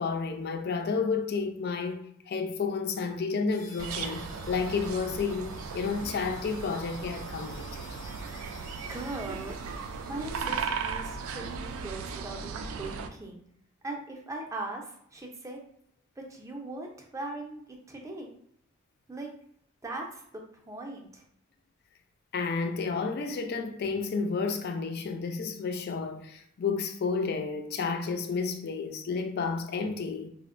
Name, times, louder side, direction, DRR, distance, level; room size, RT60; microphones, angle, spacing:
voice 1, 0.0-7.8 22.3-30.3, left 4 dB, 50° left, 0.4 m, -31 dB
sound 1, 3.5-12.3, left 2 dB, 75° left, 0.7 m, -53 dB
sound 2, 3.8-13.1, right 5 dB, 80° right, 0.3 m, -37 dB
voice 2, 8.9-9.6 10.0-13.4 13.8-15.6 16.2-18.3 19.1-19.3 19.8-21.2, right 2 dB, 15° right, 0.5 m, -39 dB
4.3 x 2.1 x 2.4 m
head